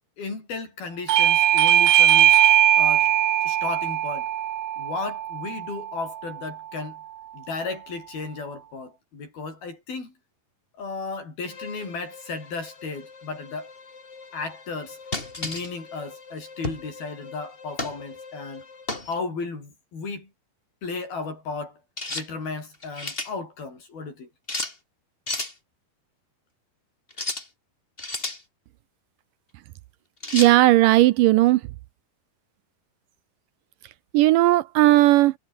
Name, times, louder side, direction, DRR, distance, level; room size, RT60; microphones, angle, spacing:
voice 1, 0.2-2.4 2.8-3.1 3.4-4.3 4.8-7.0 7.3-10.1 10.8-13.7 14.3-15.0 15.4-18.6 19.1-20.3 20.8-21.8 22.1-24.3, left 4 dB, 80° left, 10.0 m, -34 dB
Bell / Doorbell, 1.1-6.3, right 12 dB, 60° right, 2.1 m, -20 dB
Bowed string instrument, 11.4-19.1, left 4 dB, 40° left, 4.8 m, -45 dB
sound 1, 15.1-15.7 16.6-16.9 17.8-18.0 18.9-19.1 22.0-22.3 22.7-23.3 24.5-24.8 25.3-25.5 27.1-27.5 28.0-28.4 30.2-30.5, left 2 dB, 15° left, 3.4 m, -31 dB
voice 2, 30.3-31.6 34.1-35.3, right 16 dB, 80° right, 2.1 m, -16 dB
omnidirectional pair, 4.2 m